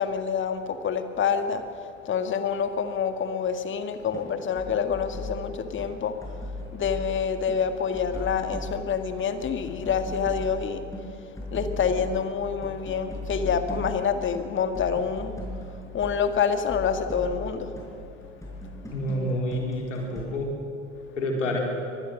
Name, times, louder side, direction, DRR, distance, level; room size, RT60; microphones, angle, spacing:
voice 1, 0.0-6.4 6.7-10.8 11.5-15.4 15.9-17.8, left 7 dB, 30° left, 8 dB, 1.8 m, -27 dB
sound 1, 4.0-4.3 4.5-5.9 6.2-7.6 7.9-20.2, left 1 dB, 10° left, 6.8 m, -37 dB
voice 2, 18.9-20.5 21.2-21.6, left 1 dB, 75° left, 0 dB, 4.1 m, -28 dB
24.0 x 19.5 x 6.5 m, 2.7 s
figure-of-eight pair, 70°, 37 cm